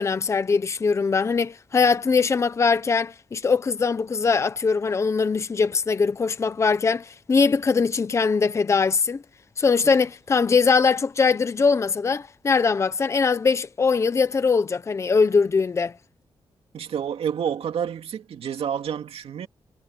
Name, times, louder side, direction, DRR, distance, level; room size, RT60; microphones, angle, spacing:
voice 1, 0.0-9.2 9.6-15.9, left 5 dB, 30° left, 0.8 m, -21 dB
voice 2, 16.7-19.5, right 8 dB, 80° right, 2.4 m, -29 dB
wide cardioid pair, 175°, 10 cm